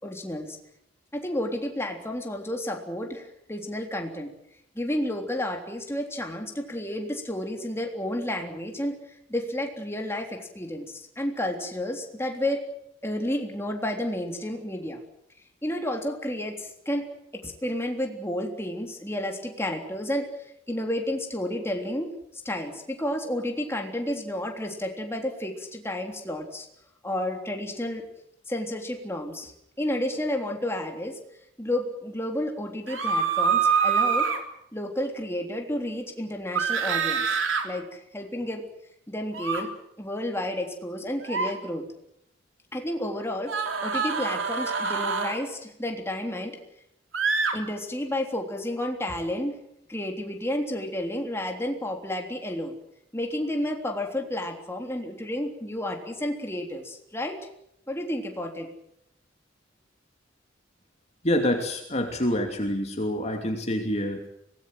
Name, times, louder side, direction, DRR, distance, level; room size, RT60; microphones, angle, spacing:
voice 1, 0.0-0.6 1.1-4.3 4.8-12.6 13.0-15.0 15.6-17.1 17.3-22.1 22.5-26.7 27.0-28.0 28.5-31.2 31.6-34.3 34.7-37.4 37.6-38.6 39.1-39.7 40.0-41.9 42.7-43.5 43.8-46.6 47.5-49.6 49.9-52.8 53.1-57.4 57.9-58.7, left 1 dB, 15° left, 2 dB, 3.5 m, -31 dB
sound 1, 32.9-34.4 36.5-37.6 39.3-39.6 41.2-41.5 43.5-45.4 47.1-47.5, right 5 dB, 85° right, 3.7 m, -25 dB
voice 2, 61.2-64.3, left 1 dB, 35° left, 4 dB, 2.7 m, -27 dB
25.0 x 19.0 x 7.8 m, 0.76 s
head